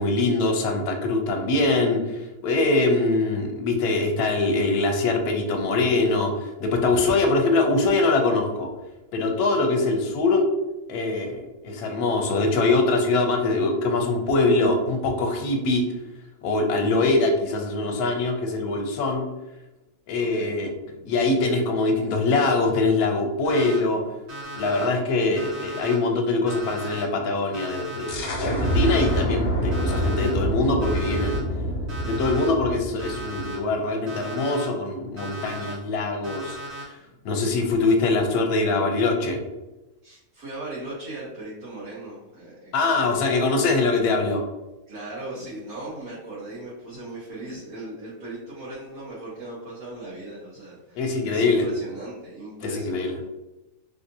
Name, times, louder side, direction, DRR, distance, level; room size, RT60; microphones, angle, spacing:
voice 1, 0.0-8.7 9.1-10.5 10.9-15.9 16.4-19.3 20.1-20.7 21.1-24.1 24.5-31.4 32.1-37.0 37.2-39.4 42.7-44.4 51.0-51.7 52.6-53.2, left 3 dB, 85° left, 3 dB, 1.1 m, -23 dB
voice 2, 6.9-7.2 20.2-20.5 20.8-21.1 22.3-22.4 32.2-32.6 40.0-43.3 44.9-53.2, right 2 dB, 80° right, -8 dB, 1.4 m, -39 dB
Alarm, 23.4-23.8 24.3-24.9 25.4-26.0 26.5-27.0 27.5-28.1 28.6-29.2 29.7-30.3 30.8-31.4 31.9-32.5 33.0-33.6 34.1-34.7 35.2-35.7 36.2-36.8, right 1 dB, 60° right, 1.6 m, -37 dB
sound 1, 28.1-33.6, equal, 60° left, 0.7 m, -26 dB
3.4 x 2.6 x 2.6 m, 1.0 s
omnidirectional pair, 1.6 m